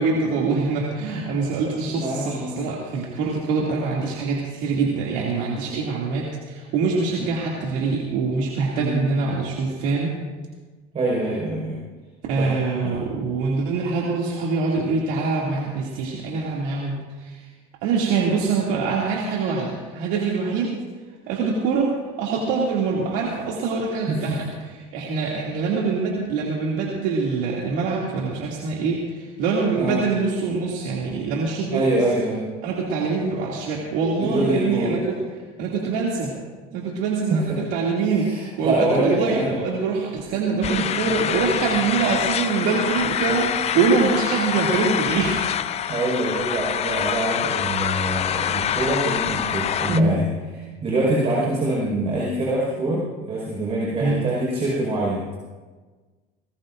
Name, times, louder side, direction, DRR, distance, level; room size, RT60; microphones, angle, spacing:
voice 1, 0.0-10.1 12.3-17.5 17.8-20.8 21.3-21.9 22.2-24.5 24.9-32.0 32.6-36.3 36.7-45.4 49.9-50.1 54.0-54.2, right 4 dB, 75° right, -3 dB, 2.6 m, -24 dB
voice 2, 1.9-2.6 8.8-9.1 10.9-11.8 12.4-12.5 12.8-12.9 24.1-24.4 29.8-30.0 31.7-32.4 34.2-34.9 37.3-37.6 38.0-39.5 45.9-50.3 50.8-55.4, right 2 dB, 35° right, -5 dB, 5.3 m, -25 dB
sound 1, 40.6-50.0, left 10 dB, 35° left, 0.6 m, -25 dB
20.0 x 20.0 x 2.6 m, 1.3 s
cardioid pair, 130°, 19 cm